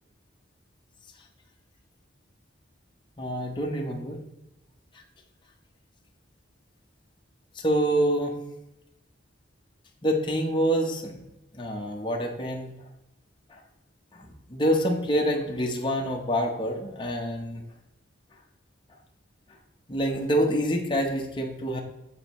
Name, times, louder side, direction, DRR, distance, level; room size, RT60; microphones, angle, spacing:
voice 1, 3.2-4.2 7.6-8.3 10.0-11.1 11.5-12.7 14.1-17.6 19.9-21.8, equal, 25° left, 1 dB, 0.8 m, -26 dB
8.8 x 4.1 x 3.0 m, 0.92 s
head